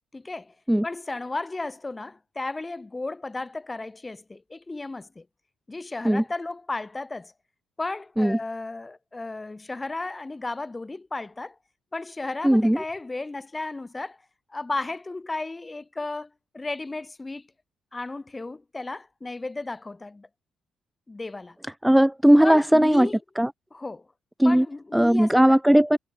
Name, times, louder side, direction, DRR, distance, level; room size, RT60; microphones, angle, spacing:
voice 1, 0.1-0.5 0.8-5.2 5.7-7.3 7.8-11.5 11.9-14.2 14.5-17.4 17.9-20.3 21.1-21.6 22.4-23.2 23.7-24.1 24.4-25.6, left 2 dB, 20° left, 6.6 m, -34 dB
voice 2, 12.4-12.8 21.8-23.1 23.4-23.5 24.4-24.7 24.9-26.0, right 1 dB, 5° right, 0.9 m, -18 dB
cardioid pair, 90°, 0 cm